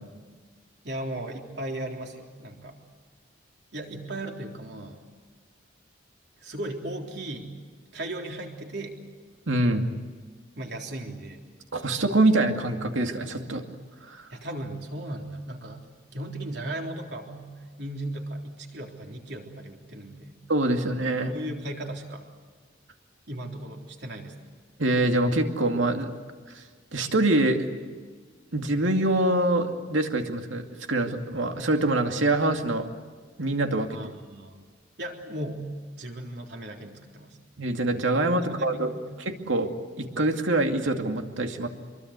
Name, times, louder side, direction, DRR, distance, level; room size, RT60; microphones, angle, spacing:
voice 1, 0.8-2.8 3.7-5.0 6.4-7.5 7.9-9.0 10.6-11.4 14.3-17.5 17.8-20.4 21.3-22.3 23.3-24.4 33.9-34.6 35.0-35.7 35.9-37.3 38.2-39.2, right 1 dB, 60° right, 1 dB, 3.7 m, -36 dB
voice 2, 9.5-9.9 11.7-13.6 14.1-14.2 20.5-21.3 24.8-26.1 26.5-26.6 26.9-27.6 28.5-32.9 33.4-33.9 37.6-38.9 39.2-39.7 40.0-41.7, right 2 dB, 90° right, 4 dB, 2.4 m, -24 dB
25.5 x 23.5 x 8.3 m, 1.5 s
head